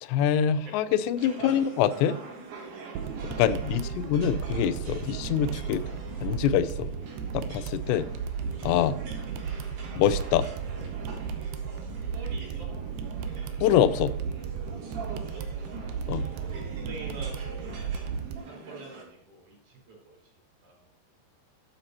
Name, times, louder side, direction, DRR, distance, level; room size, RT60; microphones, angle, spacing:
voice 1, 0.0-2.2 3.4-5.8 6.2-6.9 7.3-8.1 8.6-9.0 10.0-10.5 13.6-14.1 16.1-16.3, left 10 dB, 85° left, 14 dB, 2.8 m, -25 dB
sound 1, 1.2-19.0, right 3 dB, 60° right, 4.4 m, -44 dB
sound 2, 3.0-18.4, right 6 dB, 80° right, 2.2 m, -34 dB
voice 2, 3.1-3.8 12.0-12.7 14.9-17.7 18.4-20.3 20.6-20.8, right 2 dB, 45° right, -2 dB, 5.7 m, -47 dB
12.5 x 8.5 x 2.9 m, 0.68 s
omnidirectional pair, 5.0 m